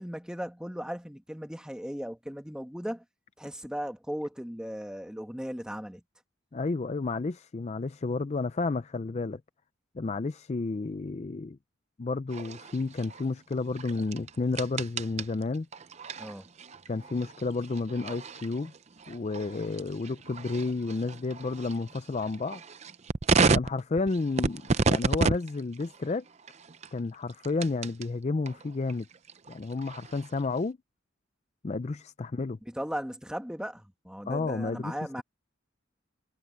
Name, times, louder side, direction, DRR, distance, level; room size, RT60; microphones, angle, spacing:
voice 1, 0.0-3.0 3.4-6.0 16.2-16.5 32.7-35.2, equal, 5° right, 1.7 m, -37 dB
voice 2, 6.5-9.4 9.9-11.6 12.0-15.7 16.9-18.7 19.1-22.6 23.5-26.2 26.9-29.1 29.5-30.8 31.6-32.6 34.3-35.2, left 3 dB, 35° left, 0.4 m, -31 dB
sound 1, 12.3-28.1 28.5-30.6, right 4 dB, 35° right, 0.6 m, -32 dB
head